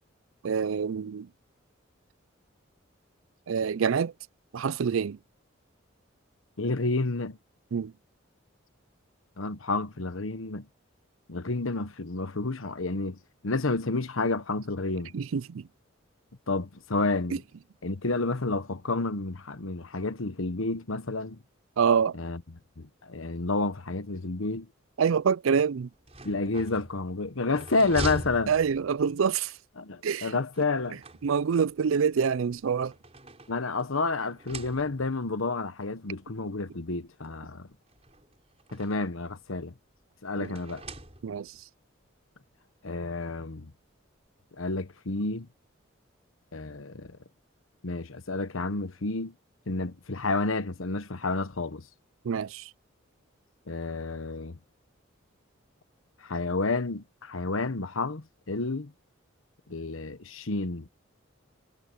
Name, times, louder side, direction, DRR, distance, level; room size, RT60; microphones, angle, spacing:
voice 1, 0.4-1.3 3.5-4.1 4.5-5.2 7.7-7.9 15.1-15.6 21.8-22.2 25.0-25.9 28.5-29.5 30.0-30.3 31.2-32.9 40.4-40.5 41.2-41.5 52.2-52.6, right 6 dB, 75° right, 0.4 m, -26 dB
voice 2, 6.6-7.4 9.4-10.7 11.3-15.1 16.5-17.4 17.8-21.4 22.1-22.4 22.8-24.7 26.2-28.5 29.8-31.0 33.5-37.7 38.7-39.7 40.2-40.8 42.8-43.7 44.6-45.5 46.5-47.2 47.8-49.3 49.7-51.8 53.7-54.6 56.2-58.9 59.7-60.9, left 3 dB, 80° left, 1.2 m, -30 dB
sound 1, 25.9-29.2 30.5-31.7 32.5-33.9 34.3-35.2 36.2-36.3 36.6-36.7 37.9-39.2 40.4-41.6, right 2 dB, 30° right, 5.2 m, -42 dB
head